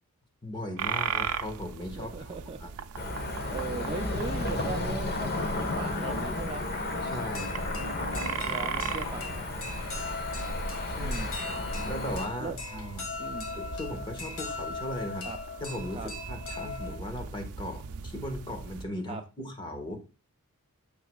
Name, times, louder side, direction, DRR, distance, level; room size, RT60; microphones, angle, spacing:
voice 1, 0.4-2.3 2.6-2.7 7.0-7.7 10.9-11.2 11.8-13.1 13.5-15.3 15.6-20.0, left 1 dB, 20° left, 4 dB, 1.6 m, -37 dB
sound 1, 0.8-18.9, right 6 dB, 75° right, 0.5 m, -39 dB
voice 2, 2.0-2.6 3.5-6.7 8.1-9.4 11.0-11.3 12.4-12.6 13.2-13.5 15.2-15.4 15.9-16.1 19.1-19.2, right 3 dB, 25° right, 6 dB, 0.5 m, -38 dB
Cricket / Motor vehicle (road), 2.9-12.3, left 2 dB, 45° left, 1.2 m, -33 dB
sound 2, 4.4-5.1 6.4-6.5 7.0-17.0, left 3 dB, 65° left, 1.9 m, -40 dB
9.5 x 7.1 x 2.4 m, 0.31 s
head